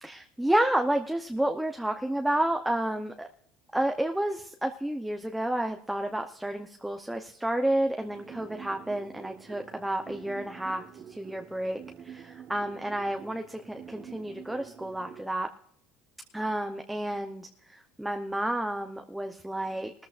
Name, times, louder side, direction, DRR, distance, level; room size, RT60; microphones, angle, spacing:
voice 1, 0.0-3.3 3.7-10.8 11.1-11.8 12.0-15.5 16.3-19.9, right 1 dB, 5° right, 4 dB, 0.8 m, -30 dB
sound 1, 8.0-15.3, right 8 dB, 40° right, 1.2 m, -47 dB
19.5 x 14.0 x 2.5 m, 0.66 s
cardioid pair, 135°, 0 cm